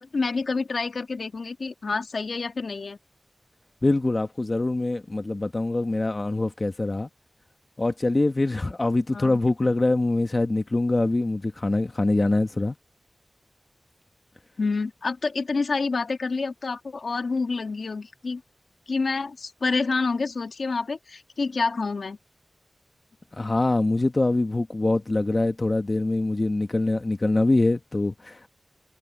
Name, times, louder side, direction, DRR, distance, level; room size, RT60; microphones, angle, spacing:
voice 1, 0.0-3.0 9.1-9.4 14.6-18.4 18.9-22.2, left 4 dB, 75° left, 1.9 m, -28 dB
voice 2, 3.8-7.1 7.8-12.7 23.3-28.5, left 2 dB, 35° left, 1.3 m, -24 dB
wide cardioid pair, 75°, 0 cm